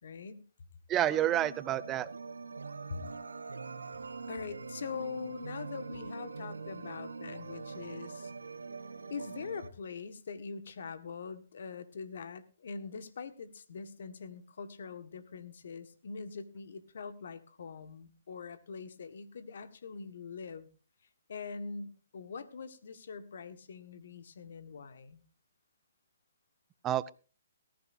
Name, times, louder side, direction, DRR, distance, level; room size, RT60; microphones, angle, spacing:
voice 1, 0.0-0.4 2.9-3.0 4.3-8.3 9.1-20.7 21.3-25.2, left 5 dB, 65° left, 11 dB, 1.7 m, -43 dB
voice 2, 0.9-2.1 26.8-27.1, right 12 dB, 20° right, 17 dB, 0.6 m, -29 dB
sound 1, 1.1-9.7, right 4 dB, 85° right, 1.1 m, -43 dB
19.0 x 14.5 x 2.7 m, 0.35 s
hypercardioid pair, 140°, 0 cm